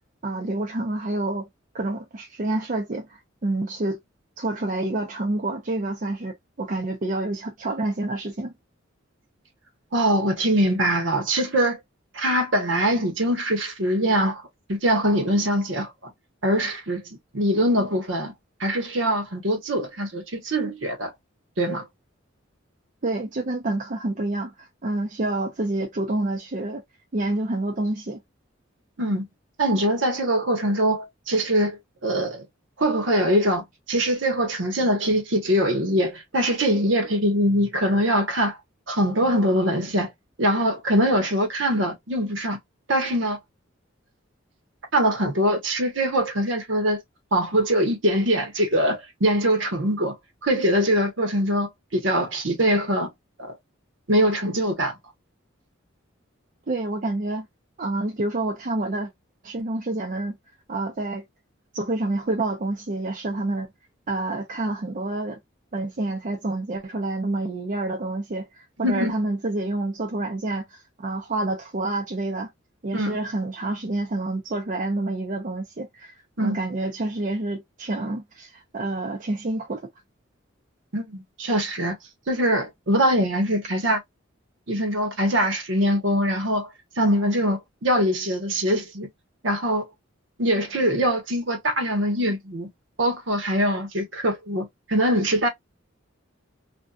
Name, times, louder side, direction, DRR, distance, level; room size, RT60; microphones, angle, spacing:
voice 1, 0.2-1.5 1.7-4.0 4.4-8.5 23.0-26.8 27.1-28.2 56.7-57.5 57.8-59.1 59.4-60.4 60.7-61.2 61.7-63.7 64.1-65.4 65.7-72.5 72.8-79.9, right 2 dB, 40° right, 0.5 m, -28 dB
voice 2, 9.9-11.8 12.1-14.4 14.7-16.1 16.4-18.3 18.6-21.1 21.6-21.8 29.0-29.2 29.6-32.5 32.8-38.6 38.9-40.1 40.4-42.6 42.9-43.4 44.9-47.0 47.3-50.2 50.4-53.1 53.4-53.5 54.1-55.0 68.8-69.1 72.9-73.2 76.4-76.6 80.9-82.0 82.3-84.0 84.7-86.7 87.0-89.1 89.4-89.8 90.4-92.7 93.0-95.5, equal, 65° right, 1.0 m, -23 dB
2.6 x 2.2 x 2.2 m
head